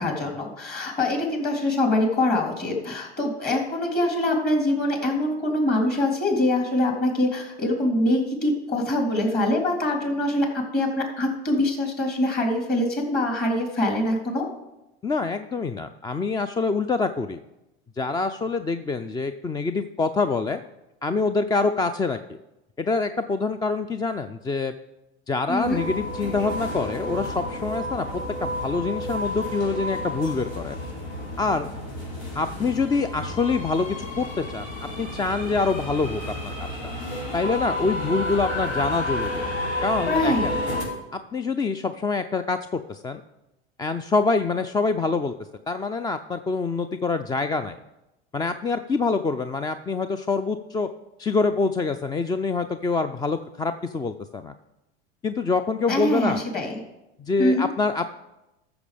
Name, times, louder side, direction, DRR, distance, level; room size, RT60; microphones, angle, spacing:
voice 1, 0.0-14.4 25.5-25.8 40.1-40.5 55.9-56.7 57.4-57.7, left 1 dB, 30° left, 1 dB, 3.4 m, -24 dB
voice 2, 15.0-17.4 18.0-20.6 21.0-22.4 22.8-24.7 25.3-28.1 28.4-30.8 31.4-31.7 32.3-34.7 35.0-36.9 37.3-39.5 39.8-40.5 41.1-43.2 43.8-45.3 45.7-47.8 48.3-50.9 51.2-54.5 55.2-56.4 57.2-58.2, left 4 dB, 15° left, 10 dB, 0.3 m, -25 dB
sound 1, 25.6-40.8, left 1 dB, 80° left, 4.7 m, -31 dB
13.0 x 6.9 x 5.1 m, 0.95 s
hypercardioid pair, 95°, 33 cm